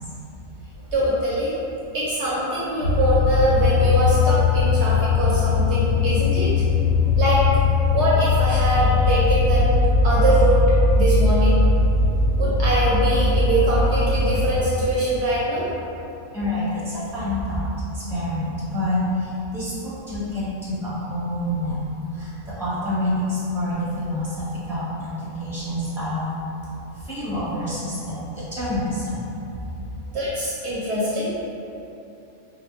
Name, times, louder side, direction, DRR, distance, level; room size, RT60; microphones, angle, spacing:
voice 1, 0.9-1.6 1.9-6.5 7.2-7.4 7.9-9.6 10.0-10.6 10.9-11.6 12.4-15.7 30.1-31.3, right 1 dB, 70° right, -7 dB, 0.8 m, -22 dB
sound 1, 2.8-14.6, left 3 dB, 65° left, 1.1 m, -19 dB
voice 2, 16.3-17.7 17.9-21.8 22.1-26.3 27.0-29.2, left 1 dB, ahead, -11 dB, 0.8 m, -27 dB
4.4 x 2.2 x 2.4 m, 2.9 s
omnidirectional pair, 1.3 m